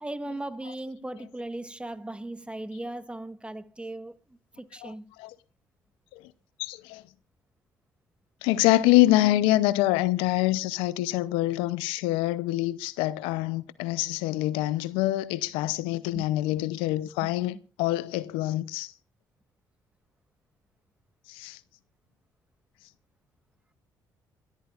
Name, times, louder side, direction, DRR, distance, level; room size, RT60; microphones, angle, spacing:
voice 1, 0.0-4.1 4.6-5.1 16.1-16.2 17.2-17.3, right 1 dB, 10° right, 1.3 m, -37 dB
voice 2, 6.6-7.0 8.4-18.9 21.3-21.6, left 16 dB, 85° left, 0.6 m, -25 dB
28.0 x 13.5 x 2.4 m
supercardioid pair, 60°, 9 cm